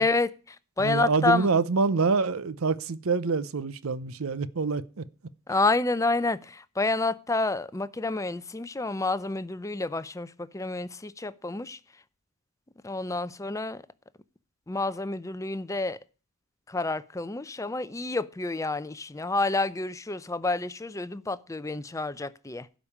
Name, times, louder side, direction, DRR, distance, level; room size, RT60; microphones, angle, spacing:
voice 1, 0.0-1.5 5.5-11.8 12.8-13.8 14.7-16.0 16.7-22.7, left 3 dB, 15° left, 0.5 m, -29 dB
voice 2, 0.8-5.0, right 4 dB, 70° right, 0.7 m, -26 dB
12.0 x 5.2 x 8.4 m
head